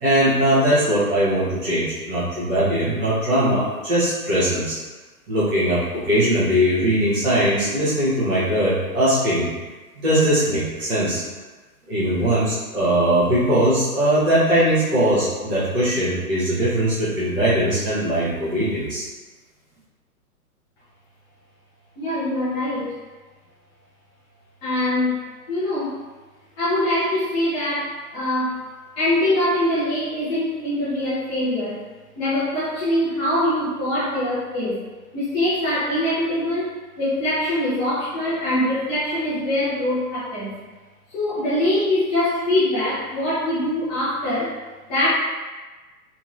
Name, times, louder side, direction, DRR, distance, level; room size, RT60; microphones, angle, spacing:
voice 1, 0.0-4.8 5.3-9.5 10.0-11.2 11.9-19.0, right 1 dB, 10° right, -12 dB, 0.4 m, -20 dB
voice 2, 22.0-23.0 24.6-25.2 25.5-26.0 26.6-28.6 29.0-31.8 32.2-34.8 35.1-40.5 41.1-44.5 44.9-45.1, left 1 dB, 20° left, -11 dB, 0.8 m, -23 dB
2.9 x 2.8 x 2.4 m, 1.3 s
figure-of-eight pair, 115°, 45 cm